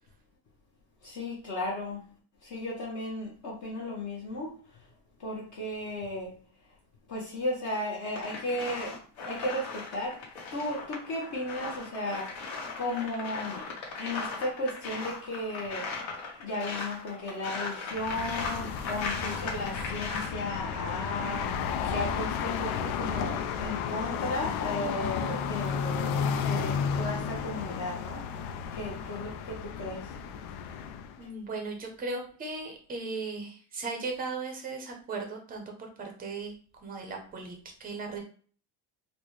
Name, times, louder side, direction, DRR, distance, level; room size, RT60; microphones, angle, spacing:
voice 1, 1.0-2.0 2.4-4.5 5.2-6.3 7.1-9.0 9.2-10.2 10.5-12.3 12.8-13.6 14.0-15.9 16.4-28.2 28.7-30.1, left 1 dB, 35° left, 0.8 m, -35 dB
sound 1, 8.1-20.3, left 4 dB, 65° left, 1.2 m, -38 dB
sound 2, 17.9-31.2, left 7 dB, 80° left, 0.6 m, -33 dB
voice 2, 31.2-36.5 36.8-38.2, right 3 dB, 20° right, 0.5 m, -37 dB
4.0 x 2.1 x 3.1 m
cardioid pair, 175°, 49 cm